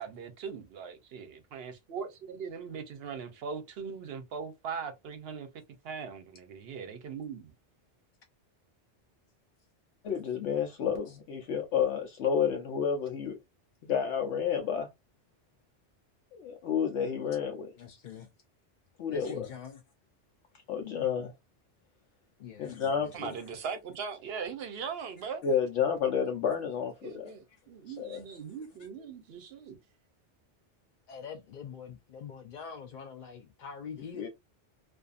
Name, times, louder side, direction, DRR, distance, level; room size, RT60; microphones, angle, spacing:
voice 1, 0.0-5.5 5.8-7.5 23.1-25.4 27.0-29.8, right 6 dB, 65° right, 0.8 m, -40 dB
voice 2, 10.0-13.4 13.8-14.9 16.3-17.7 19.0-19.5 20.7-21.3 22.6-23.3 25.4-27.3 28.0-28.2 34.2-34.3, left 7 dB, 75° left, 0.9 m, -30 dB
voice 3, 17.8-18.3 19.1-19.8 22.4-23.3 31.1-34.3, left 7 dB, 60° left, 0.5 m, -44 dB
2.6 x 2.4 x 2.4 m
omnidirectional pair, 1.2 m